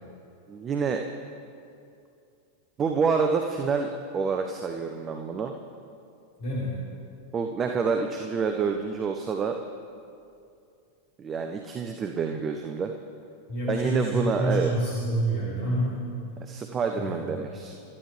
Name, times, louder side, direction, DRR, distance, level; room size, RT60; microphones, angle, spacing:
voice 1, 0.5-1.0 2.8-5.5 7.3-9.6 11.2-12.9 13.7-14.7 16.4-17.8, right 5 dB, 25° right, 4 dB, 1.0 m, -28 dB
voice 2, 6.4-6.7 13.5-16.0 17.0-17.4, right 1 dB, 50° left, -8 dB, 4.8 m, -28 dB
28.5 x 14.0 x 3.4 m, 2.5 s
figure-of-eight pair, 90°, 0 cm